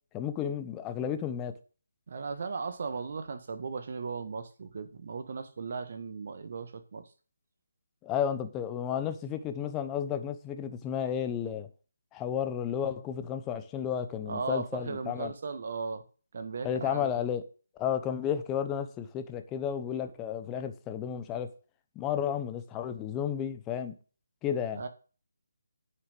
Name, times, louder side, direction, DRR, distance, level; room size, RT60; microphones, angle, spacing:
voice 1, 0.1-1.5 8.0-11.7 12.1-15.3 16.6-17.4 17.8-21.5 21.9-23.9 24.4-24.8, left 9 dB, 15° left, 1.0 m, -32 dB
voice 2, 2.1-7.1 14.3-16.0 16.3-17.2 24.7-24.9, right 4 dB, 50° right, 1.8 m, -37 dB
9.6 x 6.4 x 6.9 m
figure-of-eight pair, 155°, 0 cm